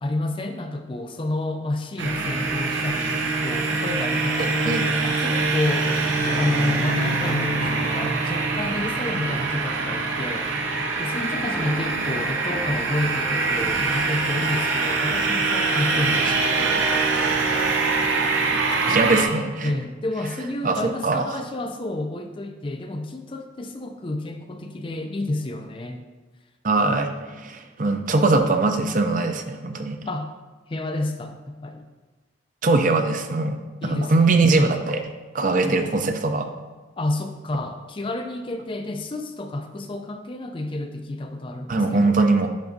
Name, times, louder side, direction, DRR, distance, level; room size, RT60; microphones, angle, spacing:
voice 1, 0.0-5.9 6.4-10.5 11.0-16.4 19.6-26.0 30.1-30.3 30.7-31.9 33.8-34.4 37.0-42.2, left 2 dB, 25° left, 6 dB, 0.4 m, -30 dB
sound 1, 2.0-19.2, right 3 dB, 75° right, 0.9 m, -24 dB
voice 2, 4.4-4.8 18.8-19.7 20.6-21.2 26.6-30.0 32.6-35.0 35.3-36.5 41.7-42.5, right 3 dB, 40° right, 6 dB, 0.5 m, -21 dB
sound 2, 6.3-10.0 11.5-15.1, right 1 dB, ahead, 0.8 m, -39 dB
10.5 x 4.7 x 2.7 m, 1.2 s
head